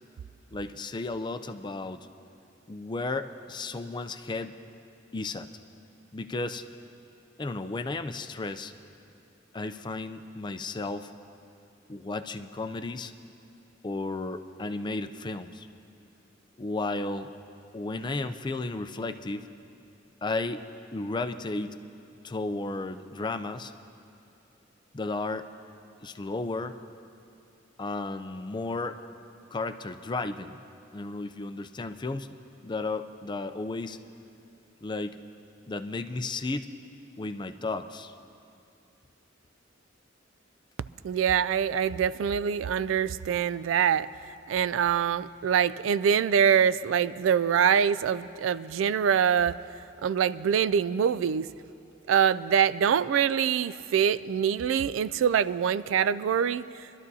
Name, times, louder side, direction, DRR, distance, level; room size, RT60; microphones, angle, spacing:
voice 1, 0.5-2.1 2.7-4.6 5.1-5.5 6.1-6.6 7.4-8.7 9.5-11.1 11.9-13.1 13.8-15.7 16.6-17.3 17.7-19.5 20.2-20.6 20.9-21.8 22.2-23.7 24.9-25.5 26.0-26.8 27.8-29.0 29.5-30.6 30.9-32.3 32.6-34.0 34.8-35.2 35.7-36.7 37.2-38.1 41.7-41.8, left 3 dB, 25° left, 9 dB, 0.4 m, -33 dB
voice 2, 41.0-44.1 44.5-49.5 50.0-51.5 52.1-56.6, right 8 dB, 80° right, 16 dB, 0.3 m, -24 dB
25.0 x 12.5 x 2.7 m, 2.6 s
head